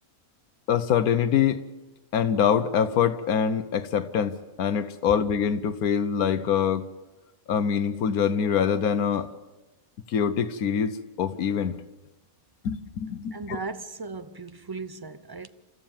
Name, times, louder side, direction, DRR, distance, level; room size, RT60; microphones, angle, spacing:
voice 1, 0.7-1.6 2.1-6.9 7.5-9.3 10.1-11.8 12.6-13.6, left 7 dB, 85° left, 1.4 m, -24 dB
voice 2, 13.3-15.5, right 4 dB, 30° right, 0.4 m, -37 dB
29.0 x 14.0 x 7.3 m
omnidirectional pair, 1.5 m